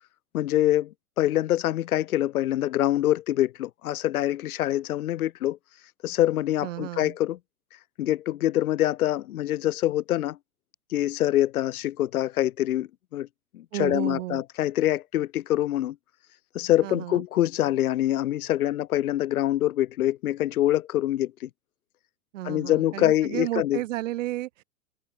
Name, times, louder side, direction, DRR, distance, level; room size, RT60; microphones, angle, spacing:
voice 1, 0.3-5.6 6.0-7.4 8.0-10.4 10.9-13.3 13.5-16.0 16.5-21.5 22.4-23.8, left 13 dB, 80° left, 0.5 m, -25 dB
voice 2, 6.6-7.1 13.7-14.4 16.8-17.2 22.3-24.6, right 15 dB, 60° right, 1.4 m, -32 dB
figure-of-eight pair, 105°, 43 cm